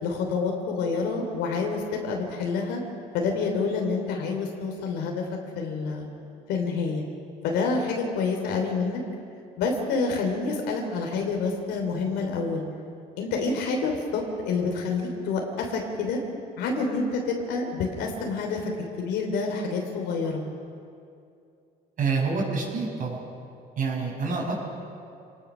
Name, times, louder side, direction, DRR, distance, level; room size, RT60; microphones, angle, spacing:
voice 1, 0.0-2.8 3.1-5.3 5.5-6.1 6.5-7.0 7.4-9.0 9.6-12.6 13.2-16.2 16.6-18.7 19.0-20.4, left 4 dB, 90° left, 1 dB, 3.3 m, -28 dB
voice 2, 22.0-23.2 23.8-24.5, right 4 dB, 55° right, -2 dB, 6.1 m, -27 dB
26.5 x 19.5 x 6.3 m, 2.5 s
cardioid pair, 110°, 17 cm